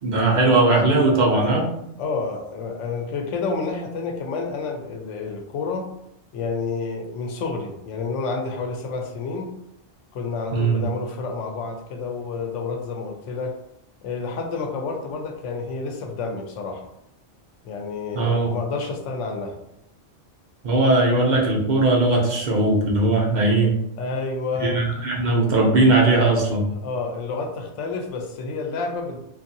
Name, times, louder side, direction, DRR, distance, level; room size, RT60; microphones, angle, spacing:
voice 1, 0.0-1.7 10.5-10.8 18.1-18.5 20.6-23.8 24.6-26.7, right 2 dB, 55° right, -2 dB, 0.5 m, -19 dB
voice 2, 2.0-5.9 6.3-9.5 10.1-13.5 14.0-16.9 17.6-19.6 24.0-24.8 26.7-29.2, left 4 dB, 80° left, 3 dB, 0.9 m, -29 dB
2.6 x 2.4 x 2.6 m, 0.78 s
omnidirectional pair, 1.3 m